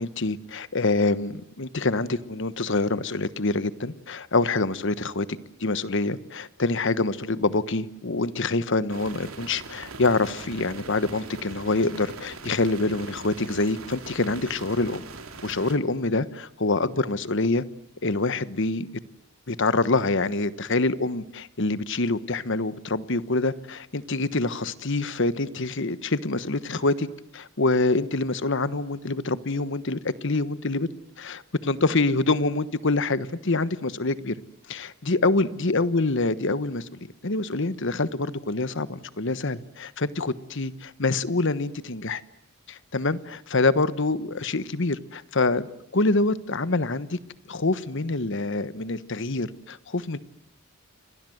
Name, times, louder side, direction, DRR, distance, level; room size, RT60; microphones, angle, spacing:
voice 1, 0.0-5.3 5.6-15.0 15.4-17.6 18.0-18.9 19.5-27.1 27.3-30.9 31.2-34.3 34.7-36.9 37.2-42.2 42.7-47.2 47.5-50.2, left 3 dB, 60° left, 15 dB, 1.2 m, -26 dB
sound 1, 8.9-15.8, right 3 dB, 80° right, 3.4 m, -41 dB
29.5 x 25.0 x 7.9 m, 0.79 s
head